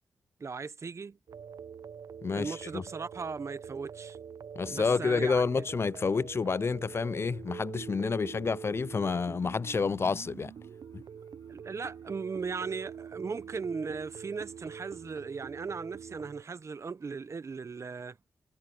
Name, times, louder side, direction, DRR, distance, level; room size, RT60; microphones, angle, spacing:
voice 1, 0.4-1.2 2.3-4.2 4.7-5.6 11.5-18.2, right 5 dB, 50° right, 0.8 m, -38 dB
sound 1, 1.3-16.4, right 7 dB, 75° right, 0.6 m, -45 dB
voice 2, 2.2-2.8 4.6-10.5 10.9-11.0, left 5 dB, 40° left, 0.3 m, -29 dB
sound 2, 10.2-15.2, left 6 dB, 75° left, 8.0 m, -70 dB
cardioid pair, 65°, 6 cm